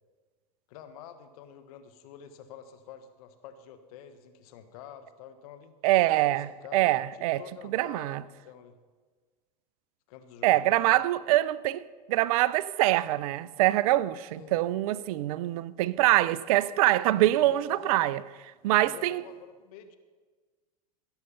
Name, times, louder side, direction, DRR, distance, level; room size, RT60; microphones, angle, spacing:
voice 1, 0.7-5.7 6.3-8.8 10.1-11.0 14.3-14.6 17.2-18.1 18.8-20.0, left 8 dB, 65° left, 1.3 m, -48 dB
voice 2, 5.8-7.4 7.7-8.2 10.4-18.2 18.6-19.2, right 15 dB, 65° right, 0.5 m, -24 dB
16.5 x 6.6 x 5.7 m
hypercardioid pair, 95°, 20 cm